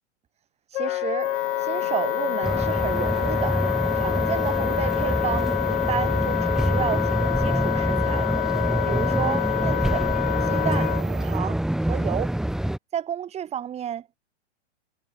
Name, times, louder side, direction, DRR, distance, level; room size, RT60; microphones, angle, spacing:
Wind instrument woodwind instrument, 0.7-11.0, left 16 dB, 50° left, 3.7 m, -27 dB
voice 1, 0.7-1.3 1.6-3.6 3.9-8.3 8.8-10.1 10.5-10.9 11.2-12.4 12.9-14.2, right 10 dB, 20° right, 6.4 m, -31 dB
sound 1, 1.2-11.4, right 9 dB, 70° right, 4.1 m, -39 dB
sound 2, 2.4-12.8, right 1 dB, ahead, 1.9 m, -26 dB
hypercardioid pair, 145°, 35 cm